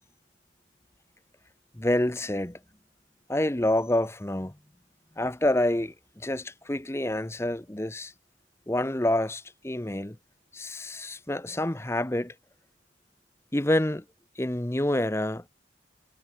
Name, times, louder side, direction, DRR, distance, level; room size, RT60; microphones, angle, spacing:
voice 1, 1.7-2.6 3.3-4.6 5.2-8.1 8.7-10.2 10.5-12.3 13.5-14.0 14.4-15.4, left 1 dB, 15° left, 0.7 m, -27 dB
head